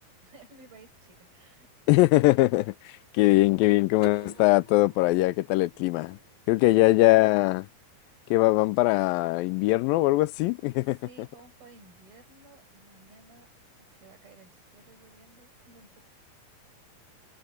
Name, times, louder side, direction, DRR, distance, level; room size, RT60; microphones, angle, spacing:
voice 1, 0.0-1.7 6.6-6.9 10.9-16.0, right 3 dB, 90° right, 9.7 m, -55 dB
voice 2, 1.9-2.7 3.1-6.2 6.5-7.7 8.3-11.0, left 19 dB, 85° left, 2.3 m, -21 dB
sound 1, 4.0-6.8, right 2 dB, 10° right, 3.9 m, -47 dB
omnidirectional pair, 4.1 m